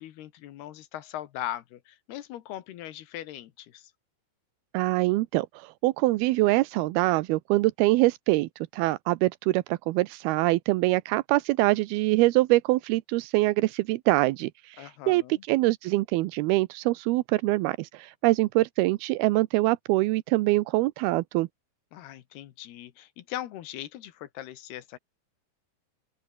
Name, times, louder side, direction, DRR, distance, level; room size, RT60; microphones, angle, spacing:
voice 1, 0.0-3.9 14.8-15.4 21.9-25.0, left 13 dB, 70° left, 3.3 m, -39 dB
voice 2, 4.7-15.2 15.5-21.5, right 19 dB, 80° right, 2.4 m, -24 dB
open air
omnidirectional pair, 5.0 m